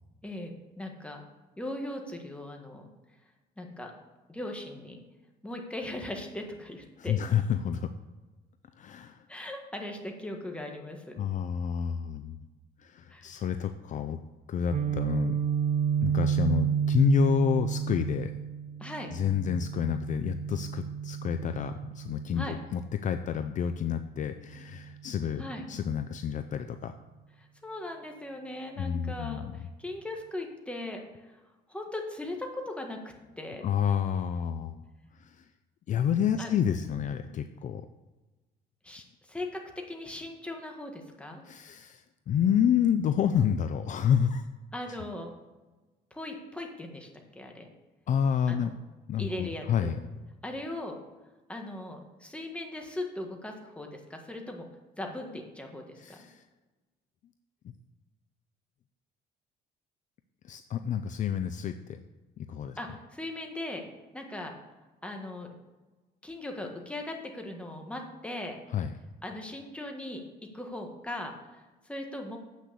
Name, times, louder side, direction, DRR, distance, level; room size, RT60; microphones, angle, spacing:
voice 1, 0.2-1.2 1.6-2.9 3.6-3.9 4.3-5.0 5.4-7.2 9.3-11.2 13.1-13.4 18.8-19.1 22.3-22.6 25.4-25.6 27.4-31.3 31.7-33.0 33.4-33.6 36.4-36.5 38.8-39.6 39.9-41.4 44.7-45.3 46.1-47.7 48.5-48.7 49.2-50.0 50.4-51.0 51.5-54.7 55.0-56.3 62.8-63.8 64.1-64.5 65.0-65.5 66.2-68.6 69.2-70.2 70.5-72.4, left 1 dB, 5° left, 2 dB, 1.6 m, -39 dB
voice 2, 7.0-7.9 8.8-9.2 11.2-12.4 12.8-14.2 14.5-15.4 16.0-18.3 19.1-26.9 28.8-29.5 33.6-34.8 35.2-35.4 35.9-37.9 41.4-44.4 48.1-48.7 49.1-50.3 56.0-56.4 60.4-62.0 62.4-62.8 68.7-68.9, left 8 dB, 50° left, 9 dB, 0.5 m, -29 dB
Guitar, 14.7-22.6, right 8 dB, 45° right, 0.6 m, -30 dB
8.1 x 6.2 x 6.9 m, 1.2 s
cardioid pair, 110°, 17 cm